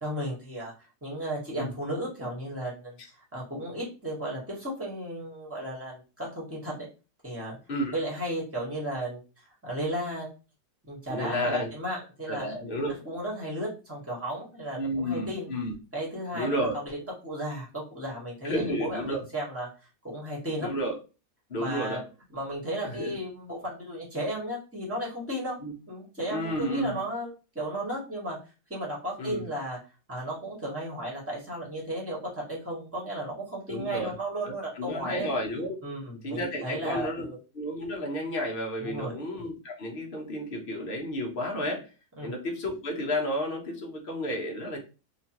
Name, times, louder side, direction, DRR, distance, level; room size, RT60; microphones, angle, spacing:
voice 1, 0.0-3.0 3.3-6.9 7.2-7.6 7.9-9.2 9.6-10.3 10.8-12.5 13.0-15.5 15.9-16.9 17.2-19.7 20.0-20.7 21.6-22.0 22.3-25.6 25.9-28.4 28.7-29.8 30.1-35.3 35.8-37.4 38.8-39.2 42.2-42.3, right 1 dB, 10° right, -4 dB, 0.9 m, -34 dB
voice 2, 11.1-11.7 12.3-12.9 14.8-15.7 16.3-16.8 18.4-19.2 20.6-21.0 21.5-22.0 22.8-23.2 25.6-25.7 26.3-27.0 29.2-29.5 33.7-34.1 34.4-35.8 36.2-37.3 37.5-41.9 42.2-44.8, equal, 60° left, 1 dB, 0.6 m, -31 dB
2.9 x 2.3 x 2.8 m, 0.32 s
omnidirectional pair, 1.8 m